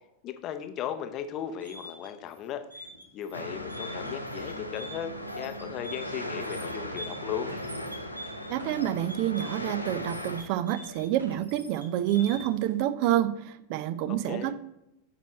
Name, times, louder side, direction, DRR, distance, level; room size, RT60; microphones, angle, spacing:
voice 1, 0.2-2.8 3.1-7.5 14.1-14.5, left 9 dB, 35° left, 8 dB, 0.6 m, -36 dB
sound 1, 1.4-12.7, equal, 85° right, 1.3 m, -45 dB
sound 2, 3.3-10.4, equal, 85° left, 0.5 m, -37 dB
voice 2, 8.5-14.5, right 12 dB, 45° right, 12 dB, 0.4 m, -28 dB
6.0 x 4.2 x 4.2 m, 0.86 s
figure-of-eight pair, 90°, 0 cm